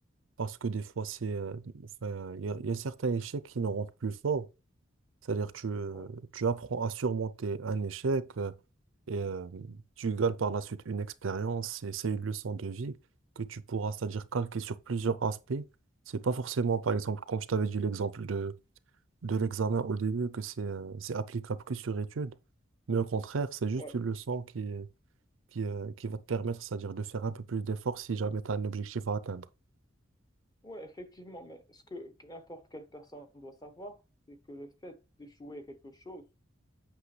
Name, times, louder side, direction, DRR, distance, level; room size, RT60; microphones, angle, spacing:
voice 1, 0.4-4.5 5.3-8.5 9.1-13.0 13.4-15.7 16.1-18.5 19.2-22.3 22.9-24.9 25.5-29.4, right 5 dB, 90° right, 0.5 m, -33 dB
voice 2, 30.6-34.0 34.3-36.2, equal, 20° left, 1.0 m, -46 dB
8.3 x 5.8 x 3.2 m
head